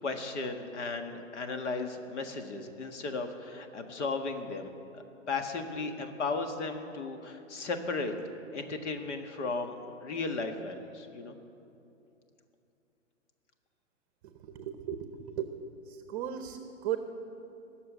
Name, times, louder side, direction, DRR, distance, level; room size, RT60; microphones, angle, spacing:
voice 1, 0.0-8.1 8.5-11.4, left 3 dB, 65° left, 6 dB, 1.7 m, -35 dB
voice 2, 14.2-17.0, right 10 dB, 30° right, 7 dB, 0.8 m, -37 dB
18.5 x 6.9 x 9.0 m, 2.7 s
hypercardioid pair, 135°, 39 cm